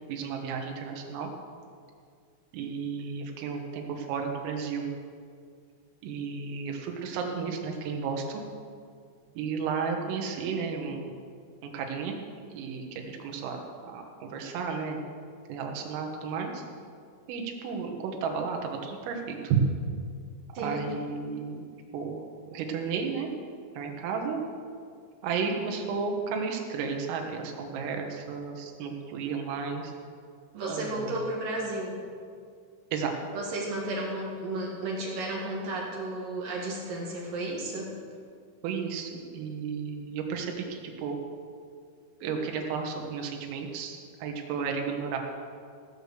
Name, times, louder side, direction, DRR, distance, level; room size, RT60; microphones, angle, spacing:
voice 1, 0.1-1.3 2.5-4.9 6.0-8.4 9.4-11.1 11.6-12.1 12.5-15.0 15.5-16.6 17.3-19.6 20.5-21.6 21.9-22.2 22.5-23.3 23.8-24.4 25.2-29.9 30.7-31.2 32.9-33.1 38.6-41.2 42.2-45.2, right 5 dB, 85° right, 2 dB, 4.0 m, -33 dB
voice 2, 30.5-32.0 33.3-37.9, right 2 dB, 55° right, -2 dB, 2.9 m, -33 dB
17.0 x 6.6 x 6.8 m, 2.2 s
omnidirectional pair, 5.8 m